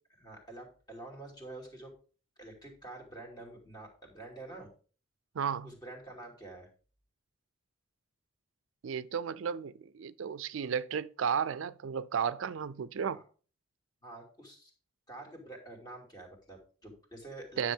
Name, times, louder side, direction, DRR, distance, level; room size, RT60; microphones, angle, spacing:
voice 1, 0.1-1.9 2.4-4.7 5.6-6.7 13.1-13.2 14.0-14.7 15.1-17.7, right 2 dB, 20° left, 2.5 m, -47 dB
voice 2, 5.3-5.8 8.8-13.2 17.6-17.7, right 7 dB, 75° right, 0.4 m, -33 dB
10.0 x 6.3 x 3.5 m
head